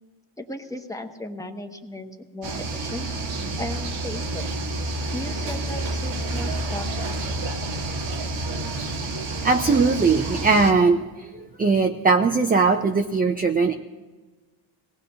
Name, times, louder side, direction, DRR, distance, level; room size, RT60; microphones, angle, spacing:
voice 1, 0.4-3.2 3.6-4.5 5.1-7.2, left 1 dB, 5° left, 4 dB, 1.2 m, -36 dB
sound 1, 2.4-10.7, right 2 dB, 90° right, 1.8 m, -29 dB
voice 2, 9.4-13.7, right 4 dB, 20° right, 4 dB, 0.6 m, -20 dB
23.0 x 18.0 x 2.8 m, 1.3 s
cardioid pair, 105°, 47 cm